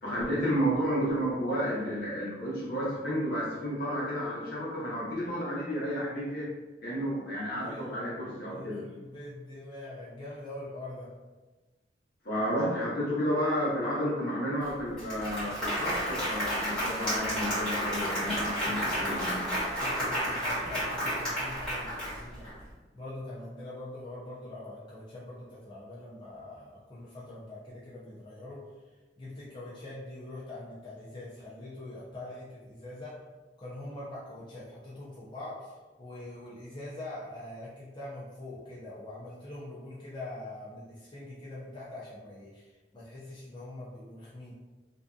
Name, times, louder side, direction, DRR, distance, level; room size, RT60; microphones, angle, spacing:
voice 1, 0.0-6.5 6.8-8.9 12.2-19.5, equal, 60° left, -6 dB, 0.9 m, -31 dB
voice 2, 7.6-8.0 8.5-11.1 19.7-22.5 22.9-28.7 29.2-33.3 33.6-42.7 42.9-44.5, left 1 dB, 25° left, -8 dB, 0.4 m, -43 dB
Applause, 14.6-14.7 15.0-22.5, equal, 5° left, 1.2 m, -31 dB
2.5 x 2.3 x 2.4 m, 1.2 s
head